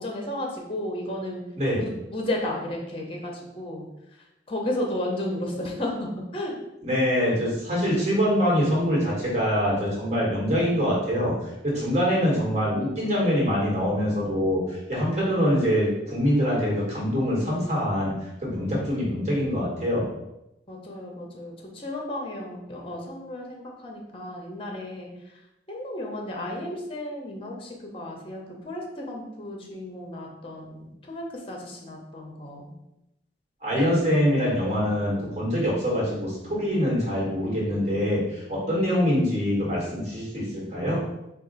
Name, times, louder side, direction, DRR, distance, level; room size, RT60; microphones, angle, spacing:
voice 1, 0.0-1.4 1.8-3.8 4.5-6.6 20.7-25.1 25.7-32.7 38.6-38.8, left 1 dB, 30° left, 0 dB, 0.8 m, -33 dB
voice 2, 6.8-11.3 11.6-18.1 18.4-20.1 33.6-41.0, equal, 40° right, -5 dB, 1.5 m, -24 dB
4.1 x 2.4 x 4.0 m, 0.89 s
head